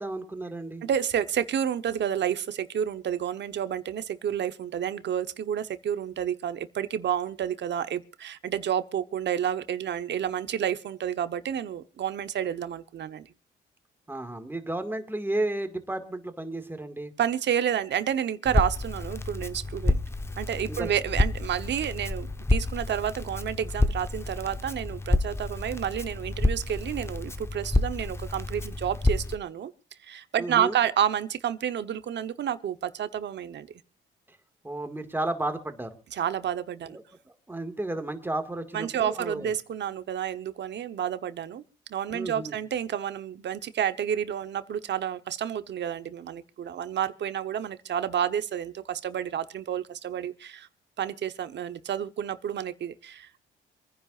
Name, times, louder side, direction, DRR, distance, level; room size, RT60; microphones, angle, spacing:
voice 1, 0.0-0.8 14.1-17.1 20.7-20.9 30.4-30.7 34.6-35.9 37.5-39.5 42.1-42.5, right 2 dB, 10° right, 2.0 m, -32 dB
voice 2, 0.8-13.3 17.2-20.0 20.4-29.7 30.0-33.7 36.1-37.0 38.7-41.6 41.9-50.7 51.0-53.4, right 9 dB, 60° right, 1.1 m, -30 dB
Crackle, 18.5-29.4, left 2 dB, 15° left, 1.0 m, -29 dB
26.5 x 10.0 x 2.5 m
cardioid pair, 90°, 20 cm